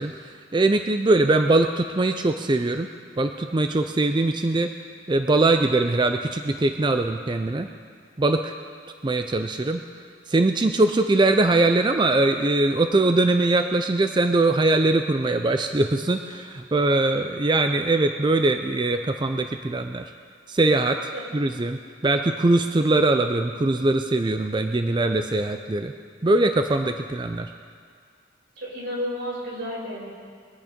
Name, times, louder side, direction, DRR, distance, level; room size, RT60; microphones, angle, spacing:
voice 1, 0.0-2.9 3.2-4.7 5.1-7.7 8.2-8.5 9.0-9.8 10.3-20.0 20.5-25.9 26.2-27.5, right 2 dB, 25° right, 6 dB, 0.4 m, -22 dB
voice 2, 28.6-30.2, equal, 85° right, -5 dB, 4.9 m, -31 dB
22.5 x 8.6 x 5.2 m, 2.1 s
head